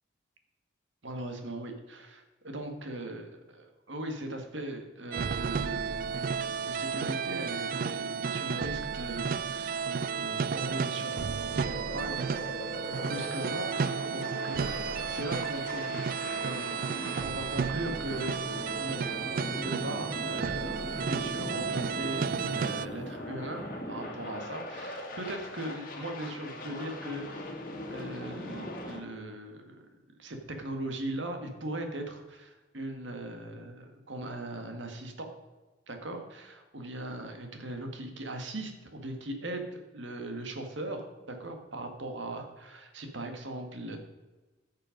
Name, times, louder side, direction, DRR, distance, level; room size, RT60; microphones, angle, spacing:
voice 1, 1.0-6.1 6.6-9.9 10.1-16.1 16.4-16.8 17.2-18.4 18.8-19.0 19.3-27.5 27.9-29.8 30.2-35.3 35.9-44.0, right 1 dB, 75° right, 4 dB, 1.8 m, -39 dB
sound 1, 5.1-22.9, right 6 dB, 50° right, 0.3 m, -33 dB
sound 2, 10.6-29.0, left 1 dB, 45° left, 1.6 m, -40 dB
14.5 x 6.7 x 5.2 m, 1.2 s
head